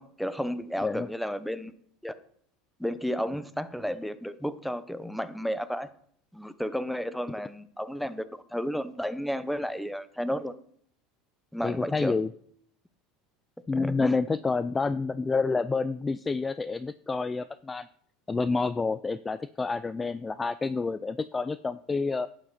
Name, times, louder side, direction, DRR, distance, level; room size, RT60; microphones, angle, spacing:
voice 1, 0.0-1.7 2.0-2.1 2.8-5.9 6.3-10.5 11.5-12.2 13.7-14.2, equal, ahead, 13 dB, 0.9 m, -32 dB
voice 2, 11.6-12.3 13.7-17.9 18.3-22.3, left 4 dB, 20° left, 15 dB, 0.4 m, -28 dB
11.5 x 9.2 x 4.2 m, 0.63 s
supercardioid pair, 100°, 0 cm